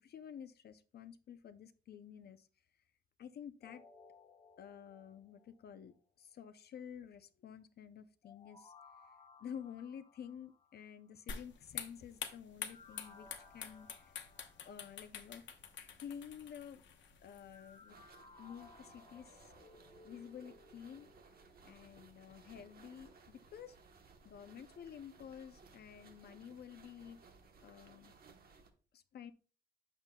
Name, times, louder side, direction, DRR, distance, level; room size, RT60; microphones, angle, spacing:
voice 1, 0.0-2.5 3.2-3.8 4.6-8.7 9.0-13.3 13.5-14.2 14.7-15.4 16.0-16.8 17.2-18.0 18.4-19.5 20.0-21.1 21.6-23.8 24.2-27.2 27.6-28.1 28.9-29.3, left 8 dB, 60° left, 11 dB, 0.5 m, -51 dB
sound 1, 3.6-5.9 8.2-11.2 12.6-15.4 17.4-21.9 22.3-22.4, left 4 dB, 30° left, 1.4 m, -61 dB
sound 2, 11.3-17.9, left 7 dB, 85° left, 1.0 m, -48 dB
sound 3, 17.9-28.7, right 4 dB, 55° right, 1.0 m, -61 dB
8.8 x 6.9 x 2.2 m, 0.38 s
wide cardioid pair, 165°, 19 cm